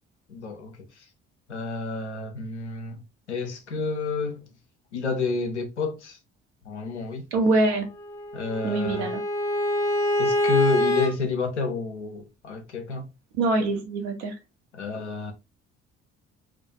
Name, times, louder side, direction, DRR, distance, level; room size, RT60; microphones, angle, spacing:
voice 1, 0.3-1.0 1.5-3.0 3.3-4.5 4.9-6.2 6.7-7.3 8.3-9.1 10.2-13.1 14.7-15.3, left 4 dB, 85° left, 0.5 m, -30 dB
voice 2, 7.3-7.9 8.6-9.2 13.4-14.3, right 2 dB, 65° right, 0.7 m, -24 dB
Bowed string instrument, 8.0-11.1, left 1 dB, 10° left, 0.5 m, -25 dB
2.3 x 2.1 x 2.5 m
figure-of-eight pair, 50°, 33 cm